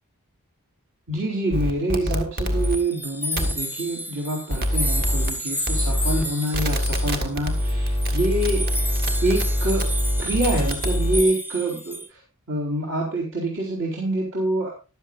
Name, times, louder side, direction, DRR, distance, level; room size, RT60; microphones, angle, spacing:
voice 1, 1.1-8.9 9.2-9.9 10.2-12.2 12.5-14.7, right 1 dB, 60° right, -2 dB, 4.5 m, -26 dB
sound 1, 1.5-2.8 3.4-3.5 4.5-5.3 5.7-6.2 6.5-11.2, equal, 45° right, 2.3 m, -24 dB
sound 2, 2.6-12.1, equal, 10° right, 1.0 m, -31 dB
15.0 x 12.0 x 2.5 m, 0.32 s
head